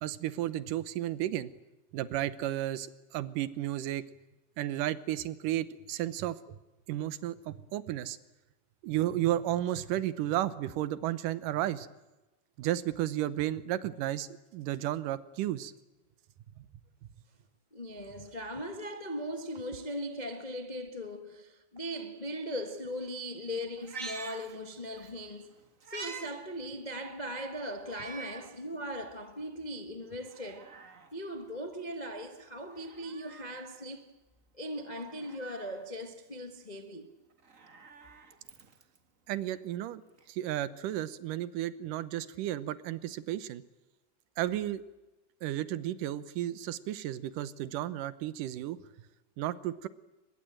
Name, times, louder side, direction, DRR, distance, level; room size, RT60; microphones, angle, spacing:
voice 1, 0.0-1.5 1.9-4.0 4.6-6.6 6.9-8.2 8.8-11.9 12.6-15.7 39.3-40.0 40.3-43.6 44.4-44.8 45.4-48.8 49.4-49.9, right 13 dB, 85° right, 2.6 m, -33 dB
voice 2, 17.7-25.5 25.9-30.7 31.1-34.1 34.5-37.1, equal, 45° left, 0.5 m, -39 dB
Meow, 23.8-25.1 25.5-26.3 26.7-26.8 27.8-28.5 29.0-29.1 30.1-31.1 32.7-33.6 35.0-35.8 37.3-39.0 40.2-40.3, right 4 dB, 30° right, 1.6 m, -46 dB
23.5 x 22.0 x 8.9 m
omnidirectional pair, 3.7 m